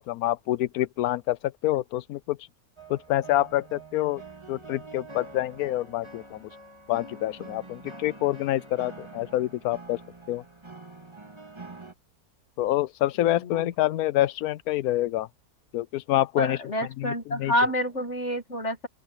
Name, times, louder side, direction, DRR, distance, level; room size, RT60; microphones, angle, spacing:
voice 1, 0.0-2.4 2.9-4.2 4.5-6.5 6.9-10.0 10.3-10.4 12.6-15.3 15.7-16.6 17.0-17.5, left 14 dB, 90° left, 1.1 m, -27 dB
sound 1, 2.8-11.9, right 2 dB, 20° right, 2.2 m, -46 dB
voice 2, 13.3-13.7 16.4-18.9, left 1 dB, 50° left, 2.5 m, -28 dB
open air
omnidirectional pair, 1.5 m